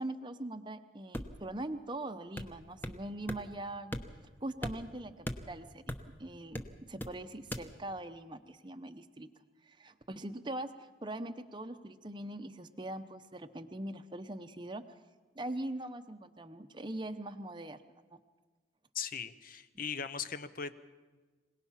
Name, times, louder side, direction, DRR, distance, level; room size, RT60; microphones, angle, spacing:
voice 1, 0.0-4.0 4.4-9.3 9.6-14.8 15.3-17.8 18.1-18.2, right 1 dB, 25° right, 7 dB, 0.8 m, -42 dB
sound 1, 1.1-1.5 2.4-3.0 3.3-3.4 3.9-4.3 4.6-6.2 6.5-7.2 7.5-7.7, left 1 dB, 10° left, 1.0 m, -39 dB
voice 2, 18.9-20.7, left 6 dB, 45° left, 12 dB, 0.9 m, -39 dB
26.0 x 18.5 x 5.8 m, 1.3 s
head